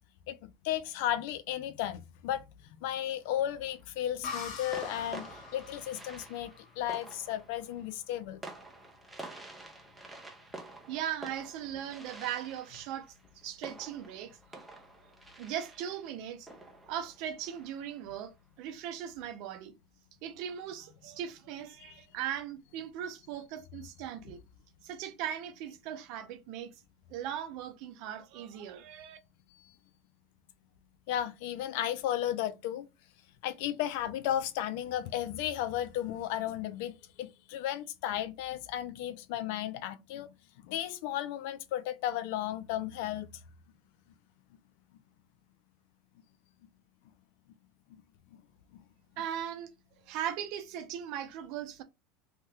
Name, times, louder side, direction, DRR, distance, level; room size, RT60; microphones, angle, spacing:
voice 1, 0.3-2.4 2.8-8.4 21.8-21.9 29.6-29.7 31.1-32.9 33.4-40.3 40.7-43.3 48.3-48.4, left 12 dB, 70° left, 0.4 m, -34 dB
sound 1, 3.2-3.8 4.7-18.1, right 2 dB, 5° right, 0.6 m, -49 dB
sound 2, 4.2-7.8, left 5 dB, 55° left, 0.9 m, -44 dB
voice 2, 10.8-13.1 13.4-14.6 15.4-16.5 16.9-19.7 20.2-24.4 24.8-26.7 27.1-29.2 49.2-49.7 50.1-51.8, right 10 dB, 55° right, 0.6 m, -39 dB
2.9 x 2.3 x 3.3 m
supercardioid pair, 150°, 0 cm